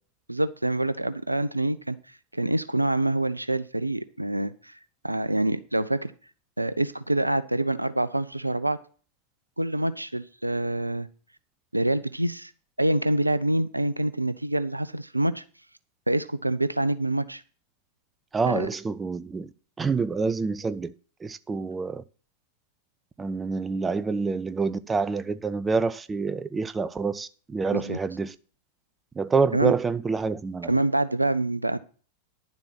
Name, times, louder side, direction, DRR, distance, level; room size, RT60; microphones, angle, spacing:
voice 1, 0.3-2.0 2.3-4.8 5.0-6.1 6.6-8.8 9.6-11.1 11.7-12.5 12.8-15.4 16.1-17.4 18.4-18.7 27.7-28.0 29.5-29.7 30.7-31.8, right 1 dB, 85° right, 0.6 m, -26 dB
voice 2, 18.3-19.5 19.8-20.9 21.2-22.0 23.2-28.3 29.2-30.7, right 4 dB, 15° right, 0.5 m, -27 dB
10.5 x 7.3 x 5.8 m
figure-of-eight pair, 90°, 0 cm